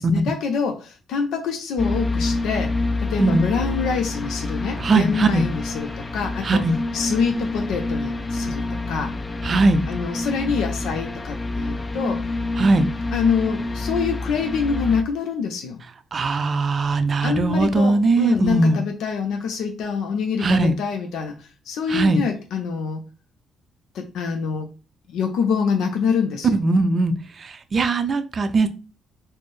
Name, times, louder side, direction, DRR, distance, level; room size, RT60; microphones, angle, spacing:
voice 1, 0.0-2.7 3.0-6.6 6.9-9.1 9.9-12.3 13.1-15.8 17.2-23.0 23.9-24.7 25.1-26.5, left 6 dB, 80° left, 3 dB, 0.5 m, -25 dB
sound 1, 1.8-15.0, left 2 dB, 20° left, 0.4 m, -27 dB
voice 2, 4.8-5.5 6.4-6.8 9.4-9.9 12.6-12.9 16.1-18.8 20.4-20.7 21.9-22.2 26.5-28.7, right 2 dB, 45° right, 10 dB, 0.4 m, -20 dB
4.2 x 2.0 x 3.2 m, 0.33 s
cardioid pair, 90°, 0 cm